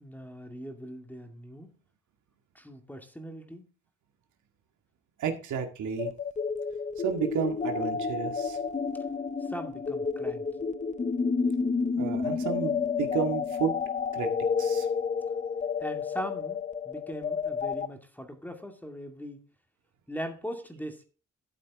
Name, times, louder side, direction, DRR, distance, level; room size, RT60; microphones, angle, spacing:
voice 1, 0.0-1.7 2.5-3.6 9.4-10.7 15.8-19.4 20.1-21.0, equal, 5° left, 2.4 m, -40 dB
voice 2, 5.2-6.1 7.0-8.6 12.0-13.8 14.1-14.3 14.6-14.9, right 7 dB, 75° right, 2.1 m, -31 dB
sound 1, 6.0-17.9, left 5 dB, 25° left, 0.7 m, -30 dB
12.5 x 7.5 x 3.7 m
cardioid pair, 90°, 30 cm